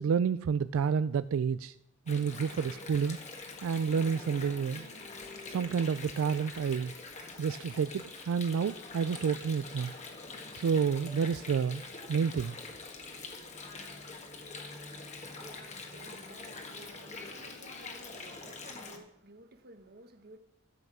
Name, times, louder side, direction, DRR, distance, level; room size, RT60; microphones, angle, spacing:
voice 1, 0.0-1.7 2.1-3.2 3.6-4.9 5.5-6.9 7.4-9.9 10.5-11.8 12.1-12.6, right 6 dB, 85° right, 14 dB, 0.3 m, -29 dB
Water, 2.1-19.0, left 3 dB, 35° left, 1.6 m, -45 dB
voice 2, 14.9-20.4, right 2 dB, 50° right, 9 dB, 1.1 m, -55 dB
12.5 x 8.0 x 6.1 m, 0.79 s
head